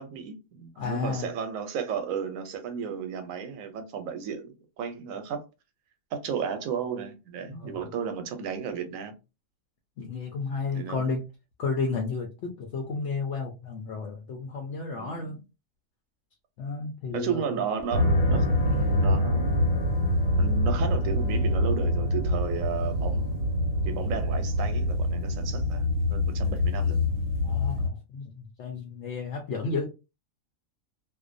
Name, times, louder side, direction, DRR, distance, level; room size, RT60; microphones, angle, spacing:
voice 1, 0.0-5.4 6.1-9.1 10.7-11.1 14.9-15.4 17.1-19.6 20.4-27.1, right 7 dB, 85° right, 1.0 m, -34 dB
voice 2, 0.8-1.3 7.5-7.8 10.0-11.2 11.6-15.4 16.6-17.4 27.4-29.8, left 4 dB, 65° left, 0.8 m, -32 dB
sound 1, 17.9-27.9, left 1 dB, 85° left, 1.2 m, -25 dB
2.5 x 2.1 x 2.5 m
omnidirectional pair, 1.4 m